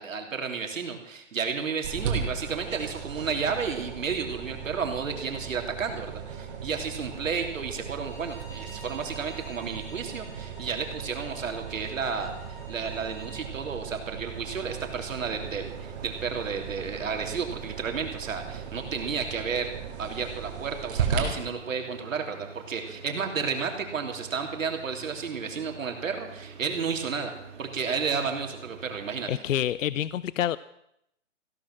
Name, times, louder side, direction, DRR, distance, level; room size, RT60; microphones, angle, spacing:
voice 1, 0.0-19.7 20.0-29.4, right 5 dB, 90° right, 3 dB, 3.2 m, -32 dB
sound 1, 1.8-21.2, right 7 dB, 45° right, 3.7 m, -37 dB
Bowed string instrument, 7.9-13.5, equal, 5° left, 0.7 m, -50 dB
sound 2, 14.2-29.2, right 6 dB, 65° right, 2.3 m, -47 dB
voice 2, 29.3-30.6, left 11 dB, 80° left, 18 dB, 0.6 m, -27 dB
16.0 x 12.5 x 6.0 m, 0.78 s
hypercardioid pair, 160°, 38 cm